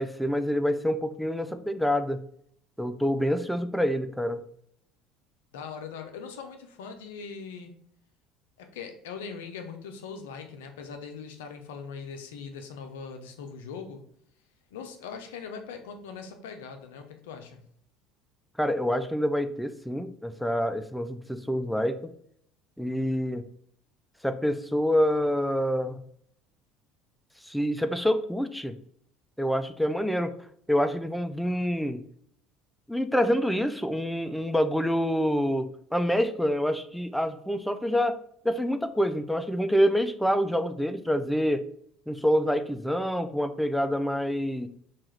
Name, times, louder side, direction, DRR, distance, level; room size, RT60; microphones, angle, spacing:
voice 1, 0.0-2.2 2.8-4.4 18.6-22.1 22.8-23.4 24.2-26.0 27.4-28.7 29.4-30.3 30.7-32.0 32.9-35.7 35.9-38.2 38.4-41.7 42.1-44.7, equal, ahead, 8 dB, 0.3 m, -26 dB
voice 2, 5.5-7.8 8.6-14.0 14.7-17.6, left 6 dB, 80° left, 5 dB, 0.5 m, -41 dB
2.8 x 2.3 x 3.2 m, 0.65 s
hypercardioid pair, 75°, 0 cm